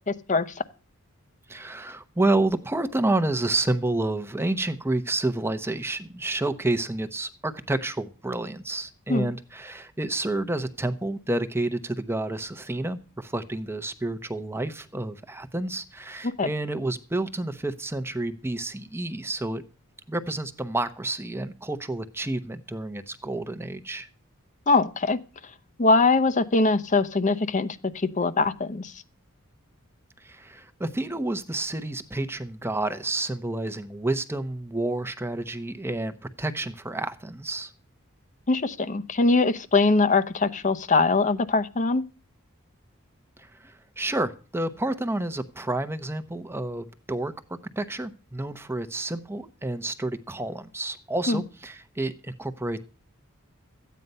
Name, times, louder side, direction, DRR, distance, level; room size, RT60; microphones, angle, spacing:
voice 1, 0.1-0.6 9.1-9.3 16.2-16.5 24.7-25.2 25.8-28.9 38.5-42.0 51.3-51.4, left 3 dB, 35° left, 12 dB, 0.8 m, -22 dB
voice 2, 1.5-19.6 20.1-24.1 30.2-37.7 43.4-47.3 47.8-52.8, right 2 dB, 10° right, 10 dB, 0.8 m, -29 dB
14.0 x 9.3 x 5.5 m, 0.36 s
head